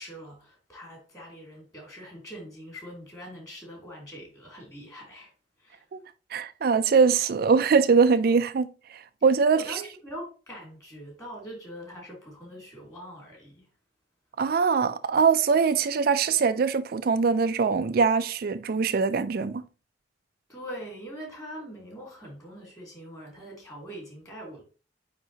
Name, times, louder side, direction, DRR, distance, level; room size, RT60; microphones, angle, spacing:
voice 1, 0.0-5.3 5.6-5.8 9.5-13.6 20.5-24.6, equal, 20° left, 3.1 m, -42 dB
voice 2, 6.3-9.8 14.4-19.6, right 5 dB, 55° right, 0.4 m, -22 dB
9.0 x 3.6 x 2.9 m
head